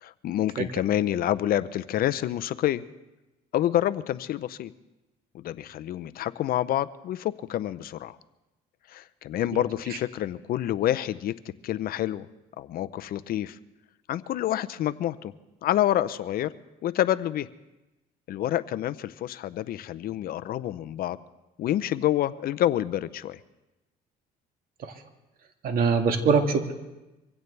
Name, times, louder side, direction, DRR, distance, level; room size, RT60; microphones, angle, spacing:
voice 1, 0.0-2.8 3.5-4.7 5.3-8.2 8.9-11.4 11.6-12.3 12.6-13.6 14.1-15.3 15.6-16.5 16.8-17.5 18.3-21.2 21.6-23.4, left 12 dB, 60° left, 14 dB, 0.6 m, -28 dB
voice 2, 25.6-26.7, right 5 dB, 60° right, 5 dB, 1.9 m, -23 dB
24.0 x 16.0 x 3.3 m, 1.0 s
cardioid pair, 110°, 17 cm